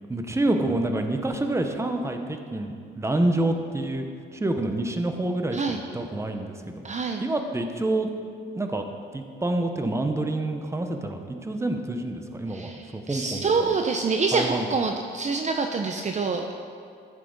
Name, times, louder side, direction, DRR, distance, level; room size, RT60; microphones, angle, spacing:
voice 1, 0.1-4.1 4.3-6.8 7.2-8.1 8.5-8.8 9.1-13.7 14.3-14.7, right 2 dB, 15° right, 5 dB, 0.9 m, -27 dB
voice 2, 6.8-7.2 12.5-16.6, right 4 dB, 35° right, 4 dB, 0.6 m, -26 dB
13.5 x 7.4 x 4.0 m, 2.3 s
cardioid pair, 90°, 20 cm